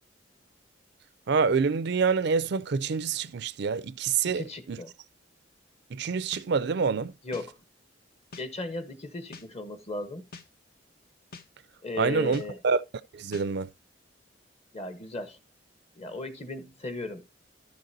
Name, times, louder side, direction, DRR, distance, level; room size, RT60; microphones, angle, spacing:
voice 1, 1.3-4.8 5.9-7.1 12.0-12.8 13.1-13.7, right 5 dB, 65° right, 0.4 m, -26 dB
voice 2, 4.2-4.9 7.2-7.6 8.4-10.3 11.8-12.6 14.7-15.4 16.0-17.2, left 2 dB, 35° left, 1.1 m, -36 dB
sound 1, 6.3-6.5 7.3-7.5 8.3-8.5 9.3-9.5 10.3-10.5 11.3-11.5 12.3-12.5 13.3-13.5, left 3 dB, 55° left, 0.8 m, -44 dB
12.5 x 6.6 x 2.7 m
head